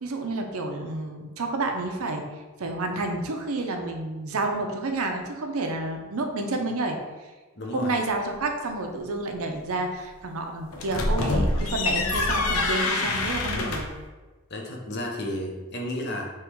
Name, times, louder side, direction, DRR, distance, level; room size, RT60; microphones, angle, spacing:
voice 1, 0.0-2.2 2.6-7.0 7.7-13.9, right 2 dB, 80° right, 4 dB, 0.6 m, -30 dB
voice 2, 7.6-7.9 13.5-13.8 14.5-16.3, left 1 dB, 50° left, 0 dB, 0.7 m, -32 dB
sound 1, 10.7-14.0, left 2 dB, 85° left, 0.6 m, -25 dB
3.6 x 3.0 x 4.5 m, 1.3 s
head